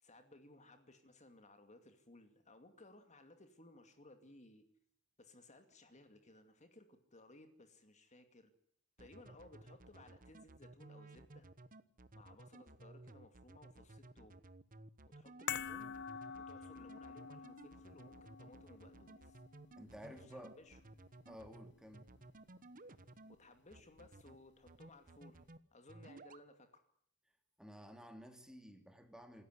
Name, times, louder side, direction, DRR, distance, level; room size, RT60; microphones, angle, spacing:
voice 1, 0.0-4.6 5.2-8.5 9.0-11.5 12.1-14.4 15.2-16.0 16.4-19.4 20.1-20.8 23.3-25.4 25.7-26.8, left 2 dB, 35° left, 8 dB, 2.4 m, -61 dB
sound 1, 9.0-23.3 23.7-24.4 24.7-25.6 25.9-26.4, right 2 dB, 40° right, 1.2 m, -56 dB
sound 2, 15.5-21.9 22.2-22.3, left 7 dB, 55° left, 1.0 m, -48 dB
voice 2, 19.8-20.6 21.3-22.1 27.6-29.4, equal, 5° right, 6 dB, 3.0 m, -53 dB
27.0 x 13.5 x 9.7 m, 0.69 s
head